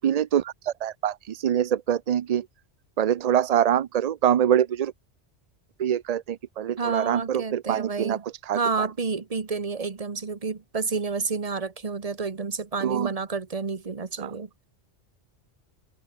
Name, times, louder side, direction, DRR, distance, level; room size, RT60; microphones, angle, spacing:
voice 1, 0.0-2.5 3.0-4.9 5.8-8.9 12.8-13.1 14.2-14.3, right 10 dB, 65° right, 0.4 m, -25 dB
voice 2, 6.8-8.2 8.5-14.7, right 4 dB, 35° right, 1.1 m, -30 dB
omnidirectional pair, 1.2 m